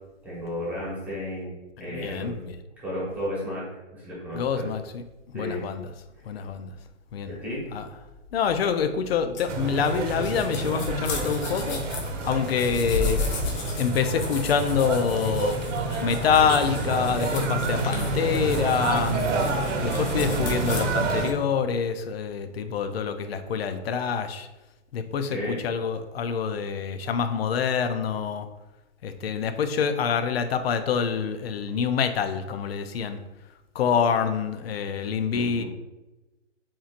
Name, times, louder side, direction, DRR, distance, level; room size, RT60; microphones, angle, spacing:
voice 1, 0.2-2.3 2.8-3.6 3.9-4.7 5.3-5.7 7.3-7.6 25.3-25.6 35.3-35.6, left 1 dB, 5° right, -7 dB, 1.2 m, -33 dB
voice 2, 1.8-2.5 4.3-5.9 6.2-6.7 7.1-7.3 7.7-7.9 8.3-13.2 13.7-15.6 16.0-19.2 19.8-24.5 24.9-28.5 29.0-33.2 33.7-35.6, left 6 dB, 55° left, 9 dB, 0.5 m, -26 dB
sound 1, 9.3-20.8, left 3 dB, 35° left, 0.9 m, -34 dB
sound 2, 9.5-21.3, right 3 dB, 75° right, 1.1 m, -28 dB
7.2 x 2.9 x 2.4 m, 1.1 s
hypercardioid pair, 160°, 37 cm